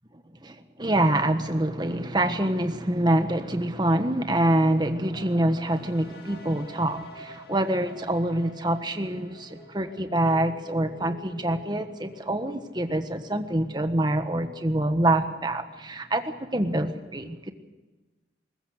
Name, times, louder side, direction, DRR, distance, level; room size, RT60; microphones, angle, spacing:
voice 1, 0.4-17.5, right 1 dB, 25° right, 8 dB, 1.4 m, -26 dB
sound 1, 5.7-13.4, equal, 60° left, 2.8 m, -48 dB
21.5 x 20.0 x 6.5 m, 1.2 s
head